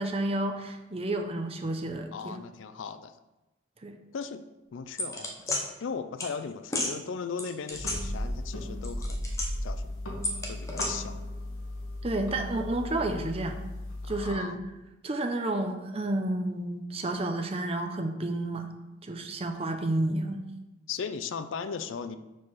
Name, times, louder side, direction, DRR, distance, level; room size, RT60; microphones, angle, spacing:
voice 1, 0.0-2.4 3.8-4.0 12.0-13.7 14.1-14.6 15.0-18.7 19.0-20.4, right 2 dB, 30° right, 5 dB, 0.6 m, -31 dB
voice 2, 2.1-3.2 4.1-4.5 4.7-5.3 5.8-9.3 9.6-10.0 10.5-11.2 14.0-14.6 20.9-22.2, left 6 dB, 70° left, 11 dB, 0.4 m, -37 dB
sound 1, 5.0-5.6 6.2-6.3 6.7-6.9 7.4-8.5 8.8-9.7 10.2-10.9, left 1 dB, 15° left, 0.8 m, -31 dB
sound 2, 7.7-14.3, left 1 dB, 85° left, 1.2 m, -38 dB
4.7 x 4.5 x 5.6 m, 1.0 s
head